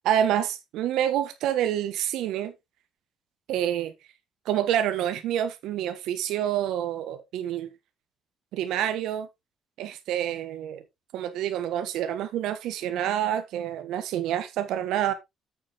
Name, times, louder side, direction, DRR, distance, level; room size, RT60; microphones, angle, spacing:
voice 1, 0.0-2.5 3.5-3.9 4.4-7.7 8.5-9.3 9.8-10.8 11.1-15.1, right 10 dB, 80° right, 1.3 m, -27 dB
8.5 x 7.2 x 3.5 m
cardioid pair, 135°, 0 cm